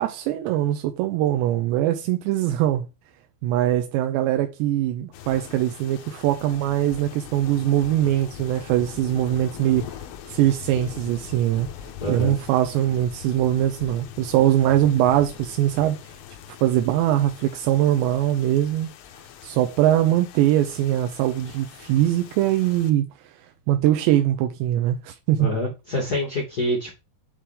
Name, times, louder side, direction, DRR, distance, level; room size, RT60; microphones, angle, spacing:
voice 1, 0.0-2.9 3.4-9.9 10.3-11.7 12.1-16.0 16.6-18.9 19.4-23.1 23.7-25.5, right 12 dB, 85° right, 2.5 m, -22 dB
sound 1, 5.1-22.9, left 10 dB, 85° left, 3.5 m, -41 dB
voice 2, 12.0-12.4 25.4-27.0, left 1 dB, 40° left, 1.3 m, -26 dB
8.5 x 4.4 x 3.7 m
omnidirectional pair, 5.6 m